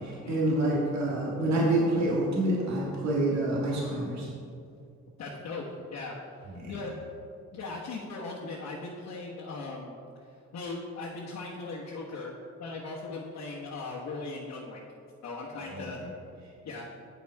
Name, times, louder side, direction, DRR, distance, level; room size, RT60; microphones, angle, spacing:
voice 1, 0.0-4.3 6.6-6.7 15.7-15.9, right 1 dB, 65° right, -5 dB, 1.9 m, -27 dB
voice 2, 5.2-6.1 6.7-7.0 7.5-10.0 10.5-12.3 12.6-14.8 15.2-16.0 16.6-16.8, left 3 dB, 60° left, -4 dB, 1.1 m, -38 dB
8.9 x 5.3 x 4.6 m, 2.5 s
cardioid pair, 90°, 30 cm